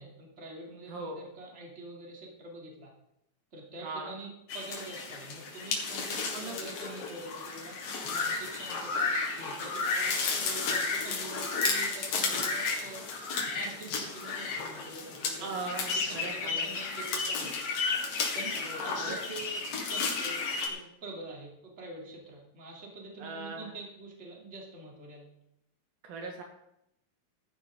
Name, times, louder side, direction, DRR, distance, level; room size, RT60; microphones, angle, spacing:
voice 1, 0.0-2.9 3.5-13.0 13.5-17.5 18.3-25.2, right 2 dB, 20° right, -2 dB, 2.9 m, -46 dB
voice 2, 0.9-1.2 3.8-4.1 6.3-6.8 15.4-16.7 18.6-19.2 23.2-23.7 26.0-26.4, right 3 dB, 70° right, 2 dB, 3.5 m, -39 dB
sound 1, 4.5-20.7, left 4 dB, 70° left, 3.6 m, -33 dB
15.5 x 12.0 x 3.8 m, 0.80 s
omnidirectional pair, 4.3 m